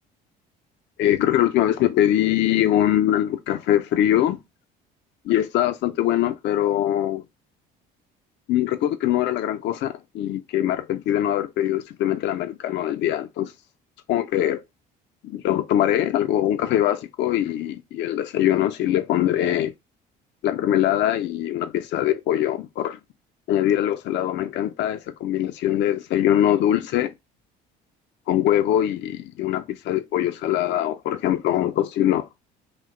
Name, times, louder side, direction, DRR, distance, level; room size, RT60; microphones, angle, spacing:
voice 1, 1.0-4.4 5.3-7.2 8.5-13.5 14.1-14.6 15.2-19.7 20.4-23.0 23.5-27.1 28.3-32.3, left 12 dB, 60° left, 0.4 m, -22 dB
2.8 x 2.1 x 3.6 m
supercardioid pair, 75°, 21 cm